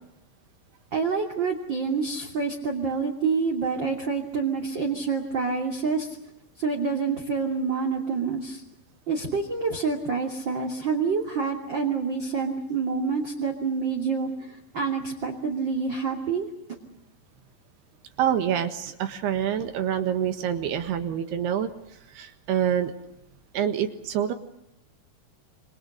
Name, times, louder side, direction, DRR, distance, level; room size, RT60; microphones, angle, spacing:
voice 1, 0.9-6.2 6.6-8.6 9.1-16.5, right 5 dB, 30° right, 2 dB, 2.8 m, -27 dB
voice 2, 18.2-21.7 22.2-22.9 23.5-24.3, right 9 dB, 70° right, 8 dB, 3.5 m, -26 dB
27.5 x 26.5 x 6.6 m, 0.83 s
omnidirectional pair, 5.0 m